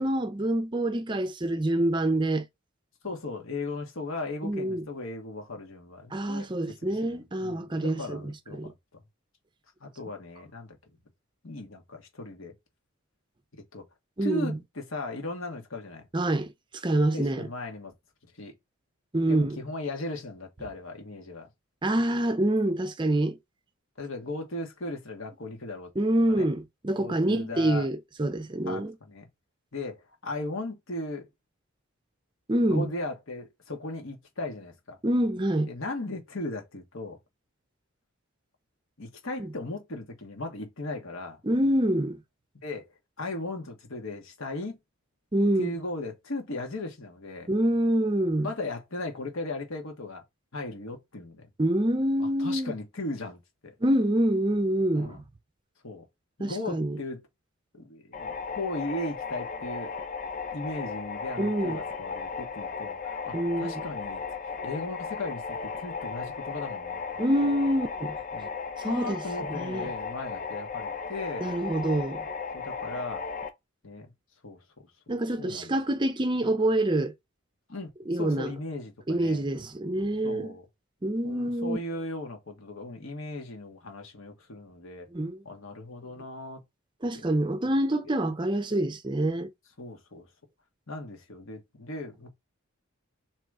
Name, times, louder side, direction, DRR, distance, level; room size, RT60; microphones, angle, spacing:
voice 1, 0.0-2.4 4.4-4.8 6.1-8.7 14.2-14.6 16.1-16.5 16.8-17.5 19.1-19.6 21.8-23.4 26.0-28.9 32.5-32.9 35.0-35.7 39.4-39.5 41.4-42.2 45.3-45.8 47.5-48.5 51.6-52.7 53.8-55.2 56.4-57.0 61.4-61.8 63.3-63.8 67.2-68.2 68.8-69.2 69.5-69.9 71.4-72.2 75.1-77.1 78.1-78.5 79.1-80.5 81.0-81.8 85.1-85.4 87.0-89.5, right 1 dB, 20° right, 0.5 m, -26 dB
voice 2, 3.0-8.7 9.8-10.8 11.4-12.5 13.7-13.8 14.2-16.0 17.1-17.9 18.2-18.5 19.2-21.5 24.0-25.9 26.3-26.5 27.0-27.9 28.6-29.2 29.7-31.3 32.6-35.0 35.7-37.2 39.0-41.4 42.6-42.9 43.2-44.8 45.6-47.5 48.4-50.2 50.5-51.5 52.2-53.7 54.9-55.2 55.8-56.0 56.4-57.2 57.7-59.9 60.5-67.0 67.4-67.5 68.3-68.5 68.8-71.5 72.5-73.2 73.8-74.1 74.4-74.6 75.4-75.8 77.7-79.4 80.2-80.6 81.2-85.1 85.4-86.6 87.7-87.8 89.8-90.3 90.9-92.3, left 2 dB, 75° left, 1.4 m, -37 dB
sound 1, 58.1-73.5, left 5 dB, 40° left, 0.6 m, -36 dB
3.7 x 3.0 x 4.7 m
head